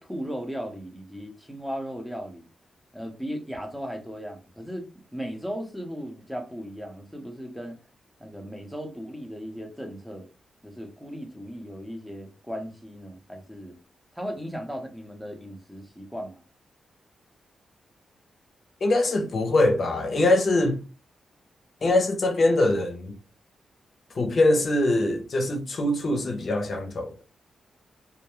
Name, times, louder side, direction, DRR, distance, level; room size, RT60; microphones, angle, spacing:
voice 1, 0.0-2.5 2.9-4.8 5.1-7.8 8.2-10.3 10.6-13.8 14.1-16.4, equal, 5° right, 0.7 m, -36 dB
voice 2, 18.8-20.8 21.8-23.2 24.1-27.2, left 2 dB, 50° left, 0.6 m, -23 dB
2.3 x 2.1 x 3.0 m
cardioid pair, 85°, 0 cm